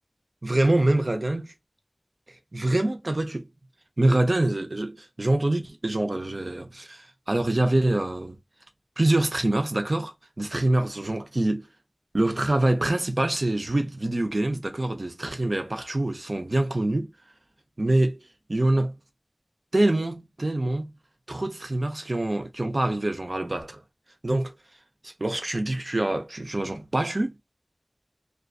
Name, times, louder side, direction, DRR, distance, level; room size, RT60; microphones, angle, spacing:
voice 1, 0.4-1.4 2.5-3.5 4.0-8.4 9.0-11.6 12.1-17.1 17.8-18.2 18.5-19.0 19.7-20.9 21.3-23.8 24.2-24.5 25.0-27.4, right 1 dB, 70° right, 0.5 m, -25 dB
2.4 x 2.2 x 2.2 m
wide cardioid pair, 40°, 0 cm